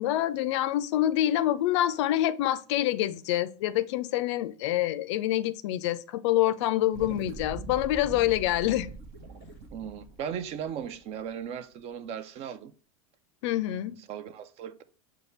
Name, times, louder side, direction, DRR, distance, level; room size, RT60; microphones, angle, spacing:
voice 1, 0.0-8.9 13.4-14.0, left 13 dB, 55° left, 0.4 m, -26 dB
sound 1, 6.9-11.6, right 3 dB, 50° right, 1.0 m, -42 dB
voice 2, 9.7-12.7 14.1-14.8, right 8 dB, 35° right, 0.4 m, -37 dB
6.2 x 2.4 x 3.0 m
figure-of-eight pair, 85°, 18 cm